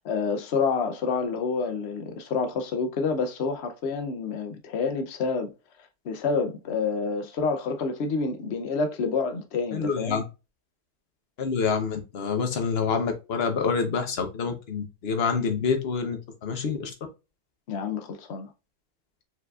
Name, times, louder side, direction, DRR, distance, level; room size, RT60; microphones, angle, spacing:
voice 1, 0.0-5.5 6.0-10.2 17.7-18.5, left 4 dB, 85° left, 0.5 m, -28 dB
voice 2, 9.7-10.2 11.4-16.9, left 5 dB, 45° left, 0.8 m, -27 dB
4.5 x 4.1 x 2.3 m
omnidirectional pair, 1.9 m